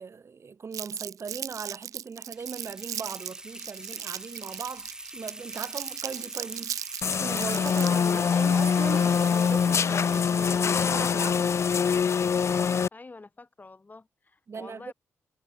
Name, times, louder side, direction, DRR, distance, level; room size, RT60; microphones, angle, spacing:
voice 1, 0.0-11.5 14.5-14.9, right 5 dB, 50° right, 2.8 m, -39 dB
Crumpling crinkling, 0.7-8.1, right 10 dB, 75° right, 0.9 m, -37 dB
sound 1, 2.3-11.0, right 1 dB, 10° right, 1.7 m, -43 dB
sound 2, 7.0-12.9, left 6 dB, 55° left, 0.8 m, -24 dB
voice 2, 12.9-14.9, left 3 dB, 30° left, 7.6 m, -48 dB
cardioid pair, 60°, 6 cm